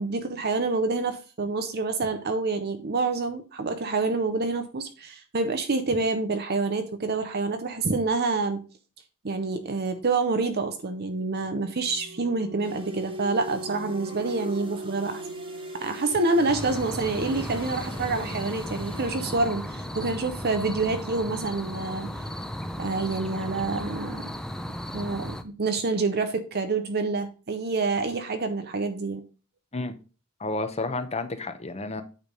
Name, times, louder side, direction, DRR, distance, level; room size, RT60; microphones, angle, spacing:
voice 1, 0.0-8.6 9.2-15.2 15.8-22.1 22.8-24.3 24.9-29.2, right 3 dB, 45° right, 0.7 m, -27 dB
sound 1, 11.5-24.0, right 1 dB, 60° right, 1.3 m, -42 dB
sound 2, 12.6-19.7, right 2 dB, 25° right, 1.4 m, -46 dB
sound 3, 16.5-25.4, equal, 5° left, 0.5 m, -35 dB
voice 2, 30.4-32.0, left 2 dB, 30° left, 0.8 m, -31 dB
9.0 x 3.5 x 5.3 m
head